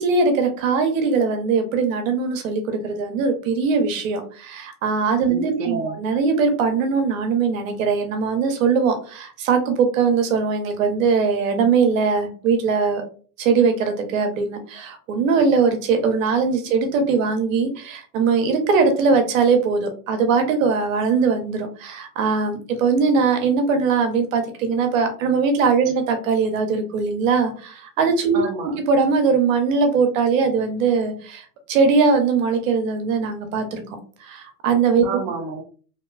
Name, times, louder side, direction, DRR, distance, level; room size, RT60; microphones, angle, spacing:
voice 1, 0.0-13.0 13.4-28.4 28.9-33.8 34.2-35.0, right 5 dB, 60° right, 6 dB, 0.8 m, -20 dB
voice 2, 5.3-6.0 28.3-28.8 35.0-35.6, right 5 dB, 30° right, 0 dB, 0.4 m, -29 dB
2.8 x 2.2 x 2.2 m, 0.41 s
hypercardioid pair, 130°, 46 cm